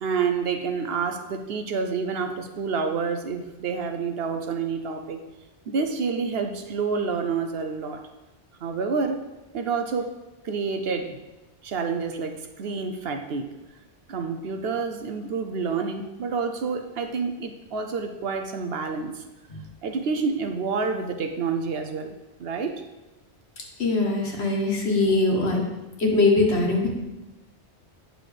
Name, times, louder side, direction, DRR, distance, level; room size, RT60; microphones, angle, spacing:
voice 1, 0.0-5.2 5.7-8.0 8.6-9.2 9.5-10.1 10.4-11.2 11.6-13.5 14.1-19.2 19.8-22.1 22.4-22.7, right 5 dB, 65° right, 6 dB, 0.8 m, -28 dB
voice 2, 23.8-25.6 26.0-26.9, left 2 dB, 65° left, 0 dB, 1.6 m, -22 dB
9.1 x 6.1 x 3.3 m, 1.0 s
omnidirectional pair, 1.2 m